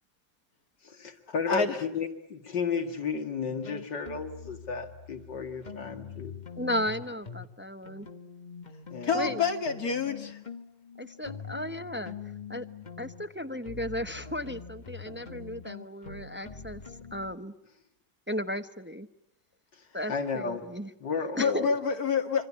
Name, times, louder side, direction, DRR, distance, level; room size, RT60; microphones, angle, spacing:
voice 1, 1.0-6.3 8.9-9.3 20.1-20.6 21.0-21.7, left 5 dB, 80° left, 6 dB, 2.7 m, -33 dB
sound 1, 3.5-7.5 7.9-17.4, left 5 dB, 25° left, 1.4 m, -44 dB
voice 2, 6.6-8.1 9.1-9.4 11.0-12.1 12.5-12.7 13.0-16.8 17.1-17.5 18.3-19.1 19.9-20.9 21.4-21.7, left 1 dB, 10° right, 8 dB, 0.6 m, -35 dB
voice 3, 9.0-10.4 21.4-22.5, left 5 dB, 55° left, 6 dB, 2.7 m, -27 dB
27.0 x 24.5 x 8.5 m, 0.81 s
omnidirectional pair, 1.9 m